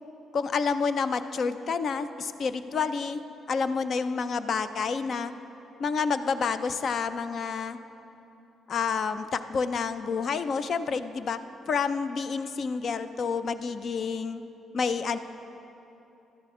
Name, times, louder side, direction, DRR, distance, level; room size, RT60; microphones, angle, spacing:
voice 1, 0.3-3.2 3.5-5.3 5.8-7.8 8.7-11.4 11.7-14.4 14.7-15.2, left 5 dB, 55° left, 12 dB, 0.4 m, -29 dB
12.5 x 11.0 x 3.6 m, 2.9 s
cardioid pair, 105°, 0 cm